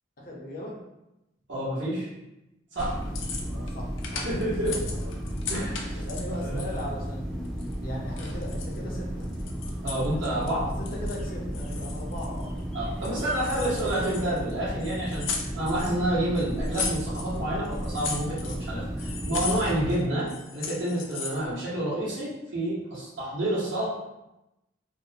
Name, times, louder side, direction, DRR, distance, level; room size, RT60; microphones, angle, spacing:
voice 1, 0.2-0.8 3.5-5.1 6.0-9.3 10.8-12.5, left 1 dB, 50° left, -3 dB, 0.6 m, -38 dB
voice 2, 1.5-2.1 2.7-2.9 4.2-4.8 5.5-6.0 6.4-6.6 9.8-10.6 12.7-15.3 15.5-23.9, right 1 dB, 70° right, -9 dB, 0.9 m, -29 dB
sound 1, 2.8-3.7 4.0-6.9 7.4-8.8 9.2-10.5 10.9-11.3 11.5-12.6 13.0-14.5 14.8-16.0 16.3-17.4 17.6-18.7 19.0-20.0 20.3-21.5, left 4 dB, 90° left, 0.4 m, -36 dB
sound 2, 2.8-20.0, equal, 5° left, 0.4 m, -34 dB
2.6 x 2.1 x 2.7 m, 0.91 s
head